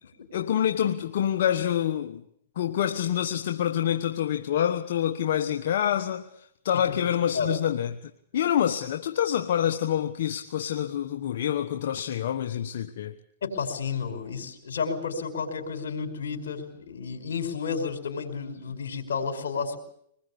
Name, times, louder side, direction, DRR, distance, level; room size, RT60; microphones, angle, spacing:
voice 1, 0.3-2.2 2.5-13.2, left 10 dB, 65° left, 1.3 m, -27 dB
voice 2, 6.8-7.5 13.4-19.8, left 5 dB, 85° left, 5.0 m, -32 dB
24.5 x 20.5 x 8.6 m
hypercardioid pair, 140°, 0 cm